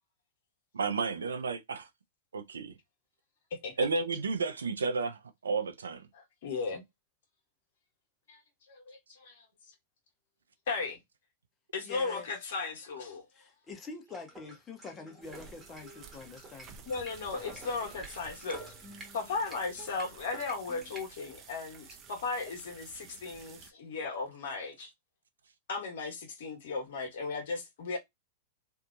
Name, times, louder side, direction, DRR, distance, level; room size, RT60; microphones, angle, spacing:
voice 1, 0.7-1.9 2.3-2.8 3.8-6.0, right 4 dB, 80° right, 0.6 m, -32 dB
voice 2, 6.1-6.8 8.3-8.4 8.7-9.4 10.7-11.0 11.7-13.2 16.8-18.7 19.1-24.9 25.7-28.0, left 4 dB, 65° left, 1.3 m, -36 dB
voice 3, 11.8-12.3 13.3-16.7, left 4 dB, 20° left, 1.0 m, -46 dB
sound 1, 14.1-21.1, right 1 dB, 15° right, 1.3 m, -50 dB
sound 2, 15.2-23.7, right 6 dB, 30° right, 0.7 m, -52 dB
2.7 x 2.6 x 2.5 m
hypercardioid pair, 105°, 0 cm